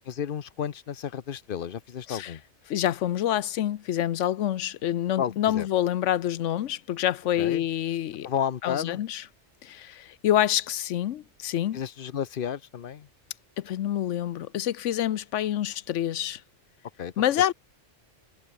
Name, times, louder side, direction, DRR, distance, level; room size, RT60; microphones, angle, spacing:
voice 1, 0.1-2.4 5.2-5.7 7.4-7.6 8.2-9.0 11.7-13.1 17.0-17.1, left 8 dB, 55° left, 0.9 m, -32 dB
voice 2, 2.7-8.3 8.6-9.2 9.6-11.8 13.6-16.4 17.2-17.5, left 11 dB, 85° left, 1.0 m, -27 dB
omnidirectional pair, 1.2 m